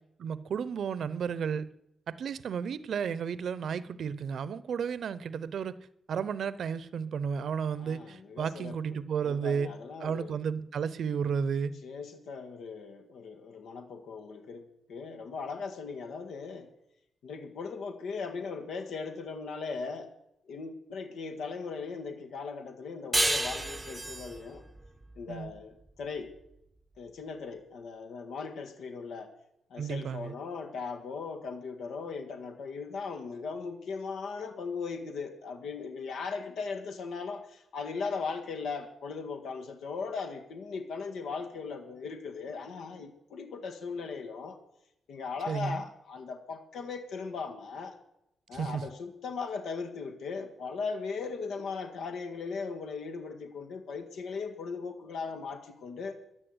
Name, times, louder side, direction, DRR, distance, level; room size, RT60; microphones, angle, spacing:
voice 1, 0.2-1.7 2.1-5.8 6.1-9.7 10.0-11.7 25.3-25.5 29.8-30.3 45.5-45.8 48.5-48.8, right 7 dB, 60° right, 17 dB, 0.8 m, -33 dB
voice 2, 7.7-10.4 11.8-16.7 17.2-20.1 20.5-24.6 25.2-26.3 27.0-29.3 29.7-44.6 45.1-48.0 48.5-56.2, left 5 dB, 85° left, 5 dB, 1.8 m, -38 dB
sound 1, 23.1-26.3, right 1 dB, 10° right, 0.7 m, -32 dB
16.0 x 10.5 x 8.0 m, 0.82 s
wide cardioid pair, 165°, 0 cm